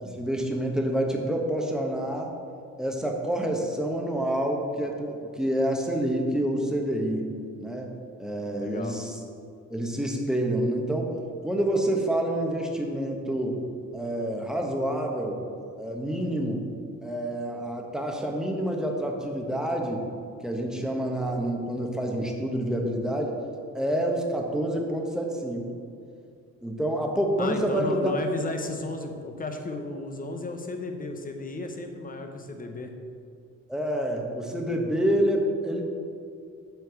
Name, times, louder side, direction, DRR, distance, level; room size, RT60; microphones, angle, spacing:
voice 1, 0.0-2.3 2.8-7.3 7.6-7.9 8.2-9.2 9.7-11.1 11.4-13.6 13.9-15.4 15.8-16.6 17.0-20.0 20.4-23.4 23.7-25.7 26.6-28.1 33.7-35.8, right 1 dB, ahead, 0 dB, 1.3 m, -28 dB
voice 2, 8.6-9.0 27.4-32.9, left 2 dB, 30° left, 5 dB, 1.1 m, -34 dB
7.9 x 4.5 x 7.0 m, 2.3 s
cardioid pair, 90°, 30 cm